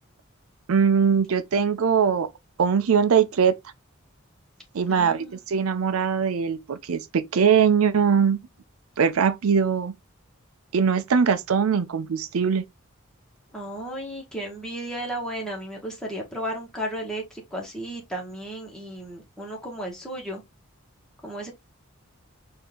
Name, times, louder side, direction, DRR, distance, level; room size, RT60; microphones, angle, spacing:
voice 1, 0.7-2.3 2.6-3.5 4.7-8.4 9.0-9.9 10.7-12.6, right 6 dB, 90° right, 0.5 m, -21 dB
voice 2, 4.9-5.4 13.5-20.4 21.2-21.5, right 1 dB, 5° left, 1.6 m, -34 dB
4.3 x 2.8 x 3.6 m
head